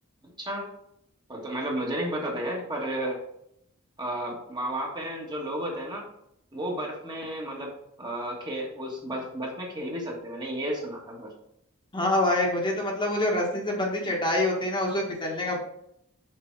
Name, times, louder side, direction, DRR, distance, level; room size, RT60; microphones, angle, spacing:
voice 1, 1.3-3.2 4.0-6.1 6.5-7.7 8.0-11.3, right 1 dB, 20° right, -2 dB, 1.6 m, -32 dB
voice 2, 11.9-15.6, left 1 dB, 25° left, -1 dB, 1.5 m, -26 dB
6.9 x 4.7 x 4.6 m, 0.75 s
head